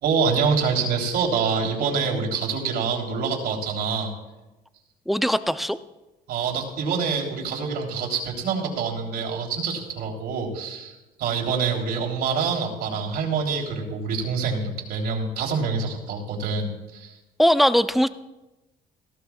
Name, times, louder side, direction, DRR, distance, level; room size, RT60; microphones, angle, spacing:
voice 1, 0.0-4.1 6.3-17.2, right 5 dB, 75° right, -1 dB, 3.5 m, -26 dB
voice 2, 5.1-5.8 17.4-18.1, equal, ahead, 12 dB, 0.5 m, -20 dB
19.0 x 15.0 x 2.4 m, 1.1 s
cardioid pair, 110°, 17 cm